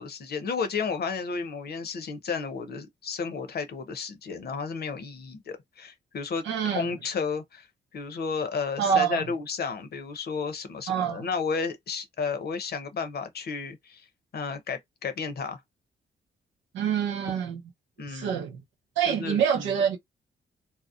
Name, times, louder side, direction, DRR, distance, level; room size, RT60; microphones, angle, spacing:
voice 1, 0.0-7.7 7.9-14.0 14.3-15.6 18.0-18.3 19.0-19.7, left 5 dB, 60° left, 0.8 m, -32 dB
voice 2, 6.5-6.9 8.8-9.3 10.9-11.3 16.7-17.6 18.1-18.6 19.0-20.0, right 8 dB, 85° right, 0.7 m, -26 dB
2.8 x 2.0 x 2.4 m
supercardioid pair, 50°, 18 cm